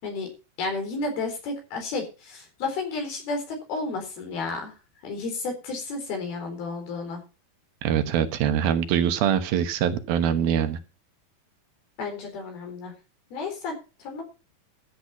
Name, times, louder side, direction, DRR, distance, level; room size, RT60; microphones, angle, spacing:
voice 1, 0.6-4.7 5.0-7.2 12.0-12.9 13.3-13.7 14.0-14.2, left 3 dB, 90° left, 3 dB, 6.0 m, -32 dB
voice 2, 7.8-10.8, right 9 dB, 80° right, 9 dB, 3.0 m, -23 dB
13.5 x 8.3 x 5.8 m, 0.32 s
omnidirectional pair, 4.2 m